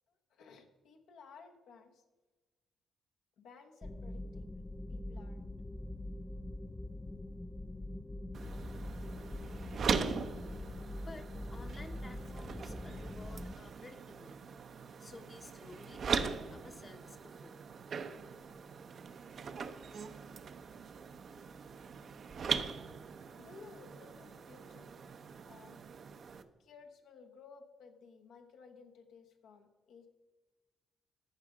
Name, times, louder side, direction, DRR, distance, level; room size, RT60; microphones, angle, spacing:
voice 1, 0.1-2.0 3.4-4.6 4.9-5.5 23.3-24.9 25.4-25.8 26.6-30.1, left 5 dB, 80° left, 4 dB, 1.1 m, -57 dB
sound 1, 3.8-13.5, left 1 dB, 20° left, 0.4 m, -43 dB
sound 2, 8.3-26.4, right 6 dB, 60° right, 0.6 m, -41 dB
voice 2, 11.0-14.5 15.0-17.6, left 3 dB, 35° left, 6 dB, 0.9 m, -53 dB
14.5 x 4.9 x 4.9 m, 1.2 s
supercardioid pair, 65°, 0 cm